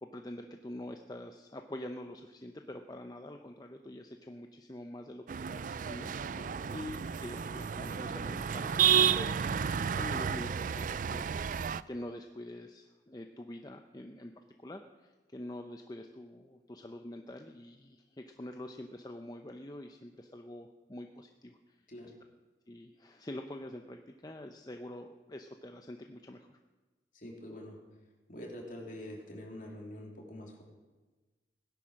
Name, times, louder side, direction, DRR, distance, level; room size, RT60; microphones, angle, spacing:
voice 1, 0.0-5.3 5.5-6.1 6.7-9.4 9.6-11.5 11.9-14.3 14.6-21.8 22.7-26.6, left 1 dB, 20° left, 5 dB, 0.7 m, -45 dB
sound 1, 5.3-11.8, right 8 dB, 45° right, 0.4 m, -31 dB
voice 2, 27.1-27.8 28.3-30.6, left 1 dB, 45° left, 0 dB, 3.2 m, -45 dB
17.5 x 10.5 x 6.4 m, 1.3 s
head